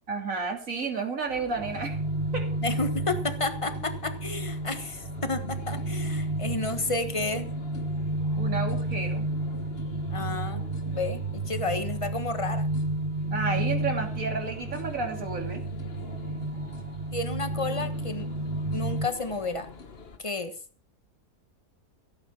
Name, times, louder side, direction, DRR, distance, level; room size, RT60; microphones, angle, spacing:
voice 1, 0.1-2.0 2.3-2.5 8.4-9.3 13.3-15.6, right 4 dB, 55° right, 3 dB, 3.2 m, -31 dB
sound 1, 1.3-20.2, left 4 dB, 40° left, 1.4 m, -44 dB
sound 2, 1.6-19.1, right 2 dB, 30° right, 0.7 m, -31 dB
voice 2, 2.6-7.5 10.1-12.6 17.1-18.3 18.7-19.7 20.2-20.5, left 2 dB, 20° left, 9 dB, 1.2 m, -31 dB
16.0 x 8.8 x 5.8 m, 0.43 s
omnidirectional pair, 1.7 m